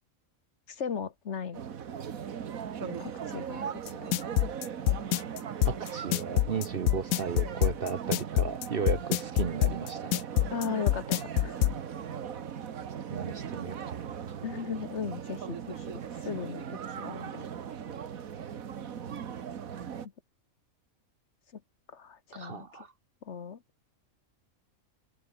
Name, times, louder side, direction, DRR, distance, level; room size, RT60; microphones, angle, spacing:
voice 1, 0.7-1.6 2.8-4.1 10.5-11.6 14.4-17.5 21.5-21.6 21.9-22.9 23.2-23.6, left 6 dB, 55° left, 1.4 m, -37 dB
sound 1, 1.5-20.1, right 8 dB, 75° right, 1.7 m, -39 dB
sound 2, 3.9-11.7, left 14 dB, 85° left, 1.0 m, -25 dB
voice 2, 5.7-10.3 13.1-14.1 22.3-22.9, right 6 dB, 45° right, 1.0 m, -35 dB
open air
omnidirectional pair, 1.5 m